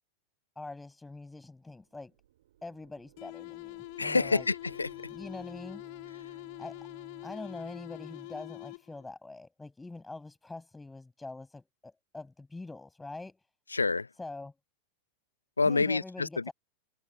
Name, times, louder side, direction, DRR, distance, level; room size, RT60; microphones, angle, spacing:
voice 1, 0.6-2.1 2.6-4.5 5.1-5.8 6.6-6.8 7.2-13.4 14.2-14.5 15.6-16.5, left 3 dB, 10° left, 7.2 m, -44 dB
sound 1, 1.7-7.9, right 12 dB, 60° right, 7.5 m, -60 dB
sound 2, 3.2-9.1, left 27 dB, 45° left, 2.1 m, -45 dB
voice 2, 4.0-5.1 13.7-14.1 15.6-16.5, left 4 dB, 80° left, 0.6 m, -28 dB
Bowed string instrument, 4.6-8.8, right 5 dB, 15° right, 6.7 m, -59 dB
figure-of-eight pair, 90°, 0 cm